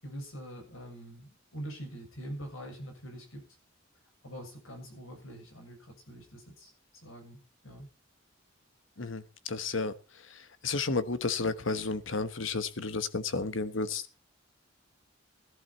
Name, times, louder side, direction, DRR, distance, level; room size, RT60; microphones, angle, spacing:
voice 1, 0.0-3.4 4.2-6.7 7.0-7.9, equal, 90° left, 7.1 m, -44 dB
voice 2, 9.0-9.9 10.6-14.0, left 4 dB, 70° left, 1.2 m, -32 dB
17.0 x 11.5 x 4.2 m
head